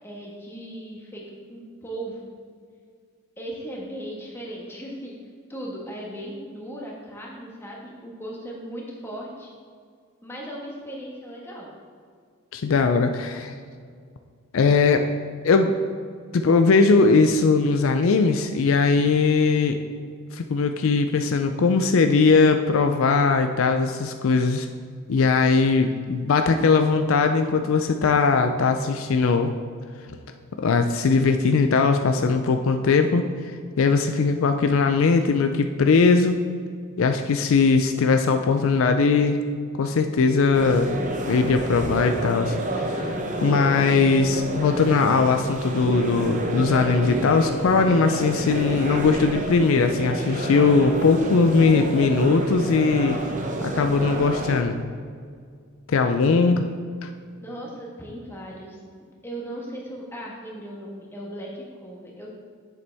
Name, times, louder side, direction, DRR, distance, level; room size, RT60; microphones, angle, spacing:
voice 1, 0.0-1.2 1.5-2.3 3.4-5.1 5.5-9.5 10.2-11.7 57.4-58.8 59.2-62.3, right 1 dB, 10° left, -3 dB, 1.3 m, -37 dB
voice 2, 12.5-13.5 14.5-15.0 15.4-15.7 16.3-19.8 20.3-24.7 25.1-29.5 30.6-33.2 33.8-36.4 37.0-39.4 39.8-40.9 41.3-42.6 42.9-43.2 43.4-53.2 53.6-54.8 55.9-56.7 57.0-57.1, left 4 dB, 65° left, 6 dB, 0.4 m, -20 dB
sound 1, 40.5-54.6, right 1 dB, 35° right, 0.7 m, -29 dB
8.2 x 6.8 x 3.4 m, 2.1 s
head